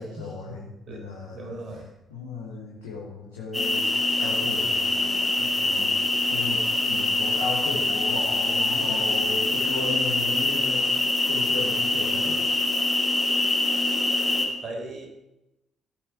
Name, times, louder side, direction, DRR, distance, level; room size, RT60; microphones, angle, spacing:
voice 1, 0.0-1.6 2.1-3.9 4.2-6.0 6.3-10.8 11.2-12.4, left 4 dB, 80° left, -7 dB, 3.3 m, -35 dB
voice 2, 1.3-1.9 14.4-15.1, right 2 dB, 50° right, 2 dB, 4.2 m, -38 dB
sound 1, 3.5-14.5, left 2 dB, 15° left, 5.4 m, -24 dB
19.5 x 9.3 x 5.0 m, 0.94 s
figure-of-eight pair, 45°, 0 cm